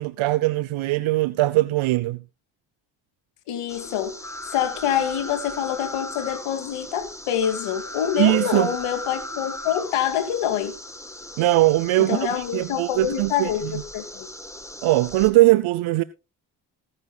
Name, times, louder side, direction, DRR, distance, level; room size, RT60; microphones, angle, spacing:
voice 1, 0.0-2.2 8.2-8.7 11.4-13.8 14.8-16.0, right 18 dB, 75° right, 0.7 m, -20 dB
voice 2, 3.5-4.2 4.5-10.7 12.0-14.3, left 9 dB, 85° left, 2.4 m, -26 dB
sound 1, 3.7-15.3, left 1 dB, 5° left, 2.1 m, -38 dB
19.0 x 10.0 x 2.3 m
supercardioid pair, 50°, 49 cm